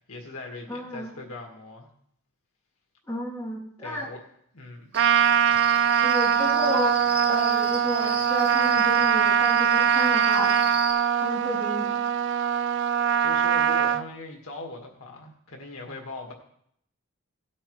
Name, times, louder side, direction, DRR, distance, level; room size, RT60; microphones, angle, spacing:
voice 1, 0.1-1.9 3.8-4.2 4.5-4.9 12.8-16.3, left 2 dB, 80° left, 1 dB, 1.9 m, -40 dB
voice 2, 0.7-1.1 3.0-4.1 6.0-6.9 7.3-10.6 11.2-12.0, left 1 dB, 10° left, -6 dB, 3.0 m, -32 dB
Cricket, 4.9-10.9, right 1 dB, 5° right, 2.4 m, -38 dB
Trumpet, 4.9-14.0, right 8 dB, 55° right, 0.4 m, -22 dB
17.0 x 8.3 x 3.2 m, 0.70 s
head